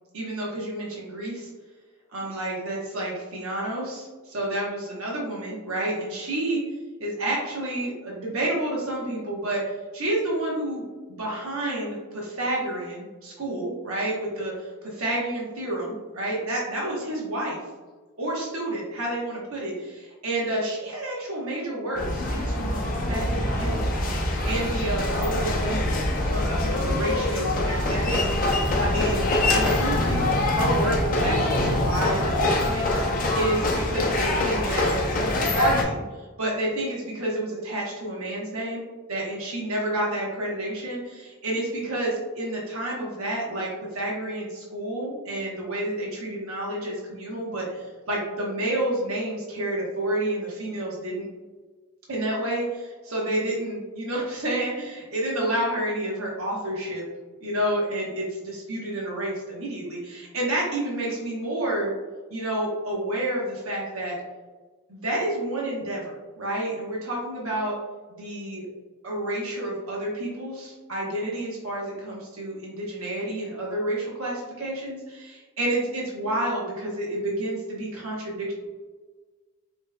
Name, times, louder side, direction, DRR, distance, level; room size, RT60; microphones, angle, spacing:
voice 1, 0.1-1.5 2.1-6.6 7.0-10.8 11.1-17.6 18.2-23.9 24.4-26.0 26.2-28.5 28.8-36.0 36.4-38.8 39.1-51.3 52.1-57.0 57.4-61.9 62.3-64.2 64.9-67.8 68.1-68.7 69.0-78.5, right 1 dB, 80° right, -4 dB, 1.0 m, -29 dB
sound 1, 21.9-35.8, left 1 dB, 40° left, 0.6 m, -24 dB
5.4 x 3.0 x 2.2 m, 1.3 s
head